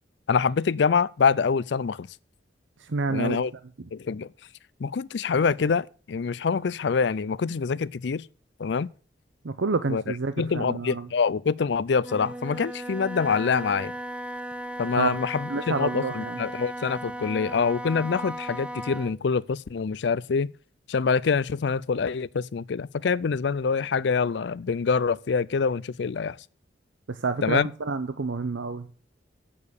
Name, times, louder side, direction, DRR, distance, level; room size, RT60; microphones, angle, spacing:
voice 1, 0.3-2.1 3.1-3.5 3.9-4.3 4.8-8.3 8.6-8.9 9.9-10.0 10.4-13.9 14.8-20.5 20.9-26.4 27.4-27.7, left 5 dB, 70° left, 0.4 m, -25 dB
voice 2, 2.8-3.4 9.4-11.1 15.0-15.1 15.5-16.4 27.1-28.9, right 4 dB, 90° right, 0.7 m, -28 dB
Wind instrument woodwind instrument, 12.0-19.2, right 1 dB, 5° right, 0.5 m, -36 dB
8.6 x 6.9 x 8.4 m
head